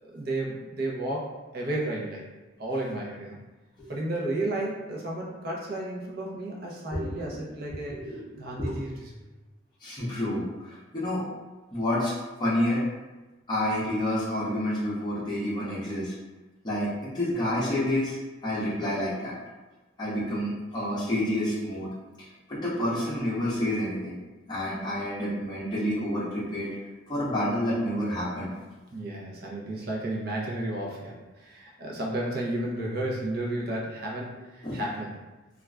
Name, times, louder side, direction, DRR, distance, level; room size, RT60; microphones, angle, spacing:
voice 1, 0.0-2.2 2.6-3.4 3.9-8.0 8.4-9.1 28.9-35.2, right 1 dB, 50° right, -3 dB, 0.6 m, -32 dB
voice 2, 7.8-8.8 9.8-11.2 11.7-12.8 13.5-16.1 16.6-18.2 18.4-19.3 20.0-21.9 22.5-24.2 24.5-26.7 27.1-28.5 34.6-34.8, left 1 dB, 20° left, -9 dB, 0.7 m, -29 dB
2.4 x 2.3 x 3.2 m, 1.1 s
head